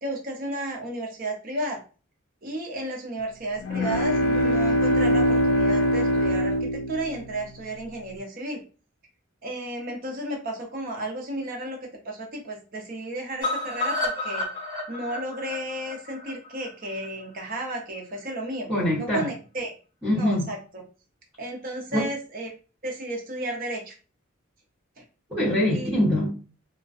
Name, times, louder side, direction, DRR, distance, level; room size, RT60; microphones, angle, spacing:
voice 1, 0.0-1.8 2.4-8.6 9.4-11.8 12.0-14.5 14.9-18.7 19.0-19.7 20.1-20.8 21.4-22.5 22.8-23.9 25.0-25.1 25.7-25.9, right 1 dB, 40° right, 0.6 m, -33 dB
sound 1, 3.6-7.6, equal, 75° left, 0.5 m, -23 dB
sound 2, 13.4-17.4 17.8-17.9 18.2-18.3 18.5-18.6, left 2 dB, 20° left, 0.8 m, -31 dB
voice 2, 18.7-19.3 20.0-20.5 21.9-22.0 25.3-26.4, left 1 dB, 10° right, 1.2 m, -23 dB
2.4 x 2.1 x 2.4 m
head